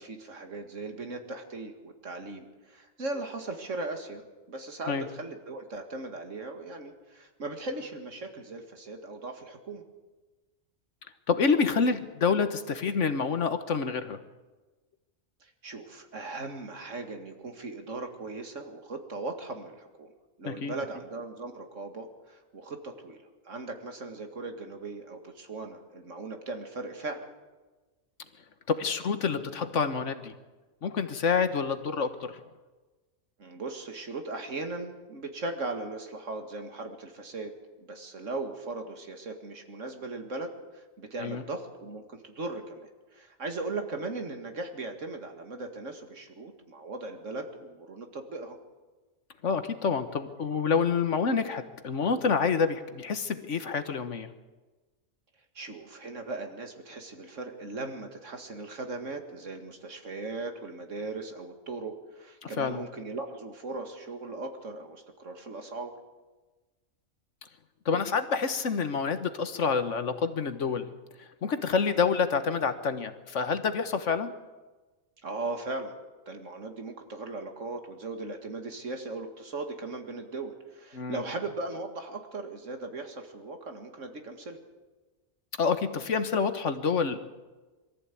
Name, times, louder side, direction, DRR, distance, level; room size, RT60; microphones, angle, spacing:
voice 1, 0.0-4.2 4.5-9.8 15.4-20.1 20.4-27.3 33.4-37.5 37.9-48.6 55.6-65.9 71.9-72.1 75.2-75.9 76.3-84.6, right 3 dB, 75° right, 5 dB, 2.4 m, -38 dB
voice 2, 11.3-14.2 20.4-20.8 28.7-30.3 30.8-32.4 41.2-41.4 49.4-54.3 62.4-62.8 67.8-70.9 71.4-74.3 80.9-81.2 85.6-87.2, left 5 dB, 70° left, 10 dB, 1.6 m, -28 dB
23.0 x 14.0 x 8.5 m, 1.2 s
omnidirectional pair, 1.3 m